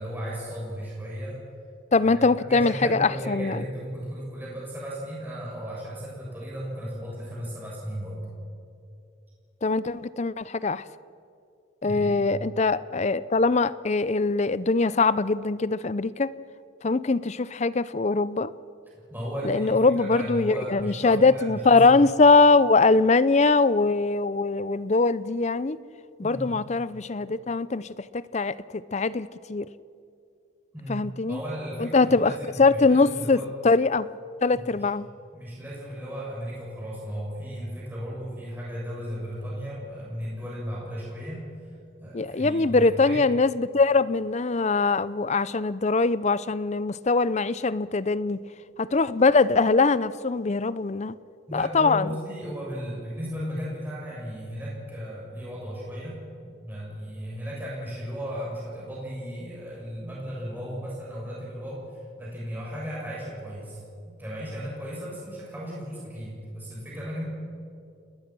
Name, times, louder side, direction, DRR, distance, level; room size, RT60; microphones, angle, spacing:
voice 1, 0.0-1.4 2.0-8.2 11.8-12.3 18.9-21.9 26.2-26.5 30.7-33.5 34.5-34.9 35.3-41.7 42.0-43.2 51.5-67.2, equal, 10° right, -6 dB, 7.6 m, -35 dB
voice 2, 1.9-3.6 9.6-10.9 11.8-16.3 16.8-18.5 19.4-25.8 26.2-27.9 28.1-29.7 30.9-31.4 31.8-32.3 32.6-33.4 33.6-34.1 34.4-35.1 42.1-48.4 48.8-51.1 51.5-52.1, left 3 dB, 35° left, 17 dB, 0.5 m, -22 dB
29.0 x 20.0 x 6.2 m, 2.5 s
head